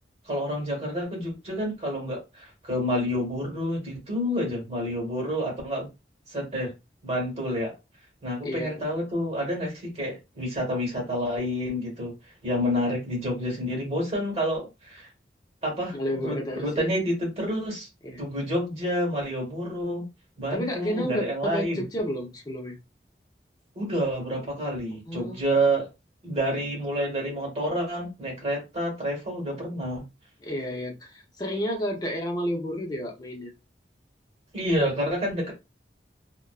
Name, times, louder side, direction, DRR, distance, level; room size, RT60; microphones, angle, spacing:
voice 1, 0.3-5.9 6.3-6.7 7.0-7.7 8.2-12.1 12.4-15.1 15.6-15.9 16.2-17.9 18.2-20.1 20.4-21.8 23.7-25.9 26.2-30.1 34.5-35.5, equal, 35° right, 1.3 m, -28 dB
voice 2, 8.4-8.8 15.9-16.9 18.0-18.2 20.5-22.8 25.0-25.4 30.4-33.5, equal, 20° left, 0.7 m, -31 dB
2.5 x 2.2 x 2.3 m
head